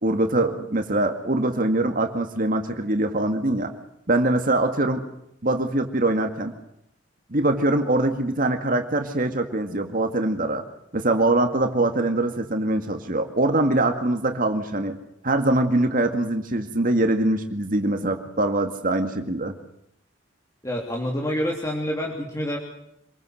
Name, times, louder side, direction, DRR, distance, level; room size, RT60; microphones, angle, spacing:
voice 1, 0.0-3.7 4.1-5.0 5.4-6.5 7.3-10.6 10.9-15.0 15.2-19.6, right 2 dB, 45° right, 6 dB, 2.1 m, -23 dB
voice 2, 20.6-22.6, equal, 15° left, -1 dB, 3.2 m, -27 dB
27.5 x 21.5 x 6.5 m, 0.78 s
head